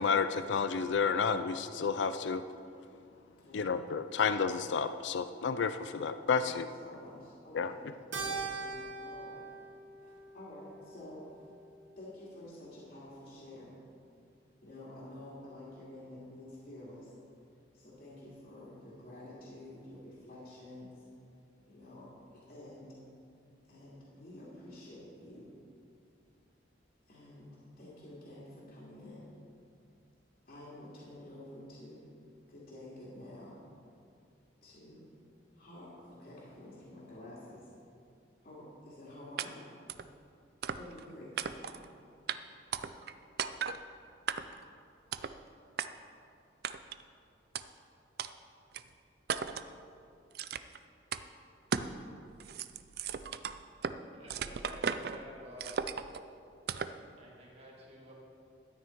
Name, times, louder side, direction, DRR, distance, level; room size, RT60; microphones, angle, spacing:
voice 1, 0.0-2.4 3.5-6.6 7.5-7.7, left 5 dB, 70° left, 11 dB, 0.4 m, -31 dB
voice 2, 6.8-7.9 8.2-9.5 10.0-11.3 12.0-13.7 14.6-17.1 17.7-21.0 21.7-22.9 23.7-25.5 27.1-27.5 27.8-29.3 30.4-32.1 32.5-33.6 34.6-35.1 35.5-37.7 38.4-39.6 40.8-43.1, left 1 dB, 50° left, -7 dB, 2.5 m, -50 dB
Keyboard (musical), 8.1-12.7, right 4 dB, 85° right, 1.5 m, -43 dB
sound 1, 39.4-39.5 39.9-40.1 40.6-41.1 41.4-41.9 42.3-42.4 42.7-43.1 43.4-43.8 44.3-44.7 45.1-45.4 45.8-45.9 46.6-47.0 47.6-47.7 48.2-48.3 48.7-48.8 49.3-49.7 50.4-50.8 51.1-51.2 51.7-52.0 52.3-54.0 54.3-55.2 55.6-56.2 56.7-57.0, right 6 dB, 55° right, 0.4 m, -36 dB
voice 3, 54.1-55.8 57.2-58.1, equal, 30° right, -3 dB, 2.0 m, -50 dB
12.5 x 9.5 x 4.6 m, 2.5 s
head